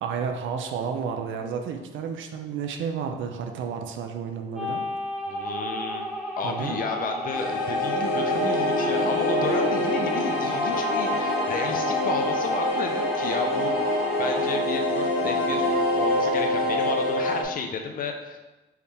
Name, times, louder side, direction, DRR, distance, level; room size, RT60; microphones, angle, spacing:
voice 1, 0.0-4.9 6.4-6.8, right 6 dB, 75° right, 4 dB, 0.6 m, -31 dB
sound 1, 4.5-14.6, equal, ahead, 1.1 m, -33 dB
voice 2, 5.3-18.4, left 4 dB, 45° left, 4 dB, 0.6 m, -32 dB
sound 2, 7.3-17.4, left 1 dB, 85° left, 1.0 m, -25 dB
4.6 x 3.2 x 3.5 m, 1.1 s
cardioid pair, 90°, 20 cm